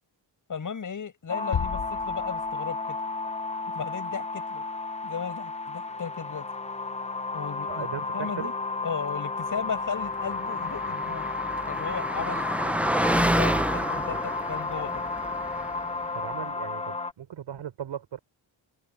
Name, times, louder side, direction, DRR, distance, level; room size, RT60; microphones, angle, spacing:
voice 1, 0.5-3.0 3.7-4.6 5.0-6.5 7.3-7.9 8.1-8.5 8.8-11.3 11.7-12.7 13.1-15.0, left 6 dB, 45° left, 6.8 m, -35 dB
sound 1, 1.3-17.1, left 3 dB, 15° left, 0.8 m, -32 dB
sound 2, 1.5-2.9, left 8 dB, 70° left, 5.5 m, -33 dB
voice 2, 7.7-8.5 16.1-18.2, right 9 dB, 85° right, 4.3 m, -37 dB
Car passing by, 10.1-16.0, right 1 dB, 5° right, 0.4 m, -29 dB
wide cardioid pair, 150°, 45 cm